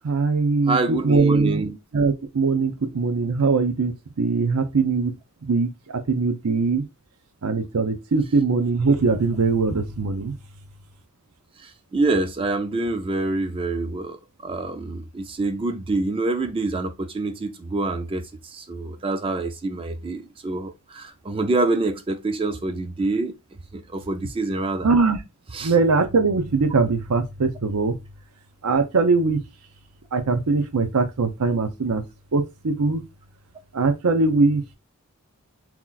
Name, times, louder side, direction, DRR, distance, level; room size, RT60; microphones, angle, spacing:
voice 1, 0.0-1.7 1.9-5.1 5.4-5.7 6.1-6.8 7.4-10.3 24.8-25.2 25.6-27.9 28.6-29.4 30.1-32.0 32.3-33.0 33.7-34.6, right 4 dB, 80° right, 0.6 m, -21 dB
voice 2, 0.7-1.8 11.6-23.3 23.7-24.9 25.5-25.7, right 2 dB, 25° right, 0.4 m, -26 dB
3.0 x 2.4 x 3.8 m
head